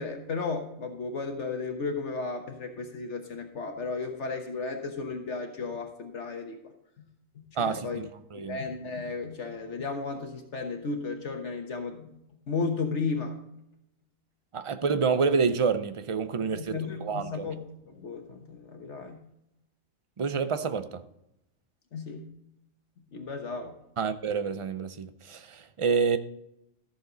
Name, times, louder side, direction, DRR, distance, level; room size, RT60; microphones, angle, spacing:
voice 1, 0.0-6.7 7.3-8.0 8.5-12.2 12.5-13.4 16.4-19.2 21.9-22.3 23.1-23.8, left 4 dB, 65° left, 1.4 m, -34 dB
voice 2, 7.6-8.6 14.5-17.5 20.2-21.0 24.0-26.2, right 5 dB, 35° right, 0.5 m, -28 dB
14.0 x 7.1 x 3.9 m
omnidirectional pair, 1.3 m